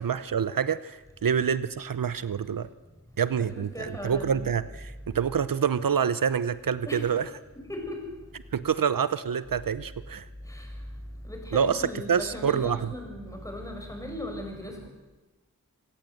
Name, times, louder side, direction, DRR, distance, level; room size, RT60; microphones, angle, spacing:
voice 1, 0.0-2.7 3.2-7.2 8.5-10.3 11.5-12.9, right 7 dB, 80° right, 15 dB, 0.8 m, -27 dB
voice 2, 3.3-4.4 6.8-7.1 7.5-8.1 10.4-10.8 11.2-14.9, left 1 dB, 10° left, 2 dB, 6.1 m, -38 dB
27.0 x 16.0 x 7.9 m, 1.2 s
wide cardioid pair, 65°, 33 cm